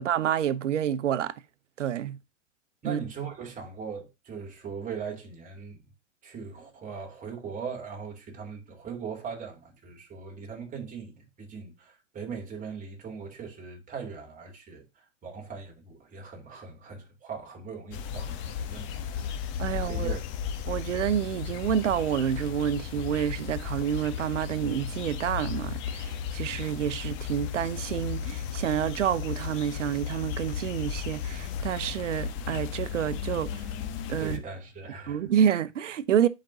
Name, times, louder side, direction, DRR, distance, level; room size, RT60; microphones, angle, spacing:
voice 1, 0.0-1.3 1.8-2.2 2.8-3.0 19.6-20.2 20.7-33.6 34.1-34.4 35.1-36.3, right 9 dB, 90° right, 0.9 m, -28 dB
voice 2, 2.8-5.8 6.2-14.8 15.2-19.2 19.8-20.2 34.2-35.2, right 6 dB, 20° right, 3.1 m, -40 dB
sound 1, 17.9-34.4, left 8 dB, 35° left, 1.2 m, -35 dB
10.5 x 5.2 x 2.7 m
hypercardioid pair, 130°, 36 cm